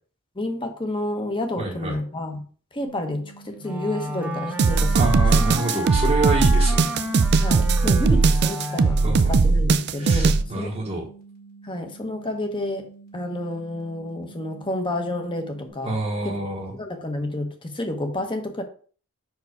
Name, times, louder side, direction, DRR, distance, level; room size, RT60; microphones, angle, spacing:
voice 1, 0.3-2.4 2.7-5.5 7.4-10.7 11.6-12.9 13.1-16.0 16.2-16.4 16.8-18.6, left 1 dB, 20° left, 5 dB, 1.0 m, -30 dB
voice 2, 1.6-2.0 4.9-6.9 9.0-9.4 10.0-11.0 15.8-16.8, right 2 dB, 30° right, -4 dB, 1.1 m, -27 dB
sound 1, 2.8-15.7, right 4 dB, 45° left, 2.1 m, -48 dB
Wind instrument woodwind instrument, 3.6-9.4, equal, 5° right, 0.7 m, -31 dB
sound 2, 4.6-10.4, right 4 dB, 50° right, 0.4 m, -19 dB
5.5 x 4.8 x 4.8 m, 0.42 s
head